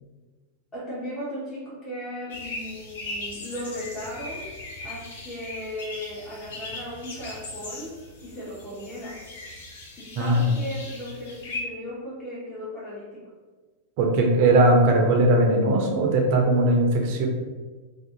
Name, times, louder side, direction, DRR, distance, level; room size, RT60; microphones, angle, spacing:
voice 1, 0.7-4.5 4.8-9.2 10.0-13.3, equal, 20° left, -9 dB, 0.8 m, -36 dB
sound 1, 2.3-11.6, left 2 dB, 65° left, 0.5 m, -39 dB
voice 2, 10.2-10.5 14.0-17.3, right 1 dB, 45° right, 2 dB, 0.5 m, -19 dB
2.5 x 2.3 x 2.7 m, 1.4 s
figure-of-eight pair, 90°, 0 cm